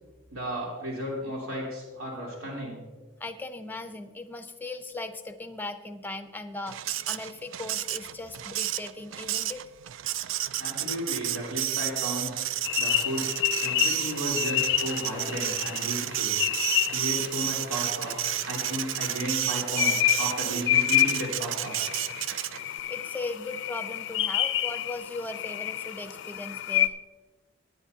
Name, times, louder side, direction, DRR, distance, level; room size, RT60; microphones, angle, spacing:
voice 1, 0.3-2.8 10.6-12.4 12.8-13.3 13.6-16.4 16.9-18.2 18.5-21.8, equal, 85° right, -4 dB, 3.4 m, -34 dB
voice 2, 3.2-9.6 22.9-26.9, left 2 dB, 10° left, 8 dB, 0.6 m, -38 dB
Printer, 6.7-22.8, right 13 dB, 60° right, 0.3 m, -31 dB
sound 1, 12.6-26.9, left 13 dB, 55° left, 0.4 m, -29 dB
18.5 x 9.6 x 2.8 m, 1.3 s
head